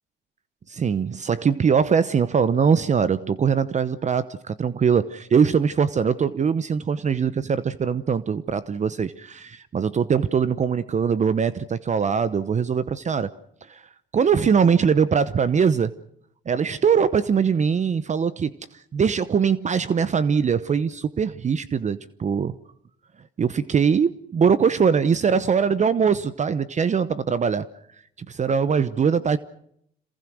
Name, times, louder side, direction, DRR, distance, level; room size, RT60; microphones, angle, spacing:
voice 1, 0.7-13.3 13.7-13.8 14.1-15.9 16.5-18.5 18.9-22.5 23.4-27.7 28.2-29.4, right 6 dB, 35° right, 0.9 m, -22 dB
27.0 x 20.5 x 6.3 m
supercardioid pair, 80°, 21 cm